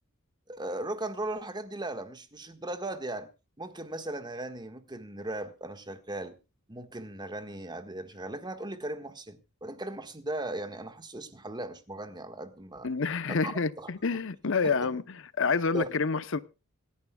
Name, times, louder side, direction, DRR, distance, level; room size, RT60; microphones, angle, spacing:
voice 1, 0.5-3.3 3.6-6.3 6.7-12.9 13.4-13.5 13.8-13.9 14.6-14.9 15.7-15.9, right 1 dB, 20° right, 1.6 m, -37 dB
voice 2, 12.8-16.4, left 4 dB, 65° left, 0.8 m, -28 dB
26.5 x 10.5 x 2.3 m
head